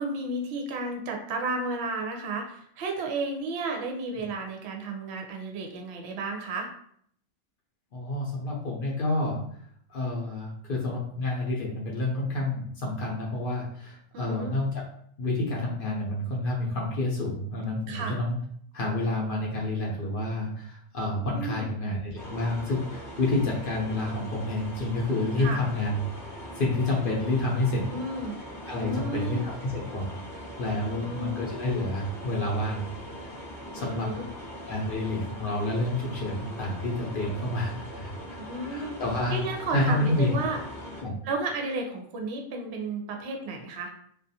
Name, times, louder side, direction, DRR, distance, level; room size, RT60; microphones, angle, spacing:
voice 1, 0.0-6.7 14.1-14.5 17.9-18.1 21.3-21.7 25.4-25.6 27.9-28.4 28.8-29.5 30.7-31.5 33.8-34.2 38.4-39.0 39.3-40.6 41.2-43.9, right 2 dB, 65° right, 2 dB, 0.8 m, -33 dB
voice 2, 7.9-9.4 9.9-14.8 15.2-18.4 18.7-26.0 26.3-27.9 28.7-32.9 33.2-33.4 33.7-34.1 34.7-38.1 38.6-39.4 39.7-40.3 41.0-41.2, left 2 dB, 50° left, -4 dB, 0.7 m, -29 dB
sound 1, 22.2-41.0, equal, 5° left, 0.6 m, -41 dB
2.4 x 2.3 x 2.6 m, 0.65 s
omnidirectional pair, 1.3 m